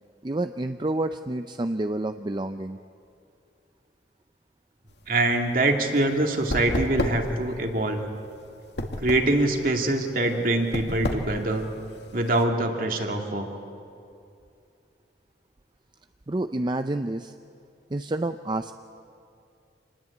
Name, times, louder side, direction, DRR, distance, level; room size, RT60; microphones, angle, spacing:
voice 1, 0.2-2.8 16.3-17.3 17.9-18.7, right 2 dB, 25° right, 8 dB, 0.5 m, -29 dB
sound 1, 4.9-12.4, left 1 dB, 75° left, 2.0 m, -32 dB
voice 2, 5.1-8.1 9.0-11.6 12.1-13.5, right 2 dB, 50° right, 3 dB, 2.4 m, -24 dB
27.0 x 20.0 x 8.4 m, 2.5 s
head